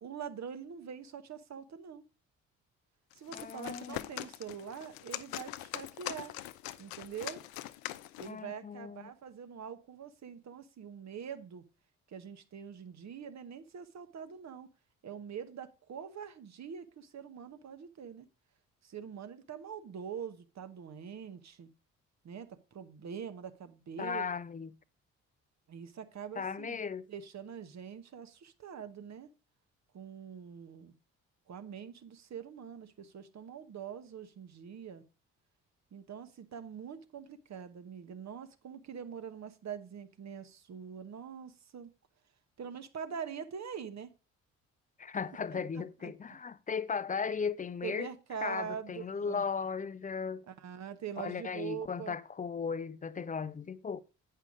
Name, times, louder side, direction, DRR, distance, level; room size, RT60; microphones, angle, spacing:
voice 1, 0.0-2.1 3.1-6.3 6.8-7.4 8.2-11.6 12.1-14.7 15.0-18.3 18.8-21.7 22.2-24.3 25.7-26.8 27.1-29.3 29.9-30.9 31.5-35.0 35.9-41.9 42.6-44.1 45.5-46.1 47.8-49.4 50.5-52.1, right 7 dB, 45° right, 1.1 m, -44 dB
sound 1, 3.1-8.4, left 15 dB, 70° left, 0.6 m, -42 dB
voice 2, 3.3-4.0 8.2-9.1 24.0-24.7 26.4-27.1 45.0-48.1 48.4-50.5 51.2-54.0, left 6 dB, 20° left, 0.5 m, -36 dB
8.3 x 5.6 x 5.0 m
hypercardioid pair, 45°, 38 cm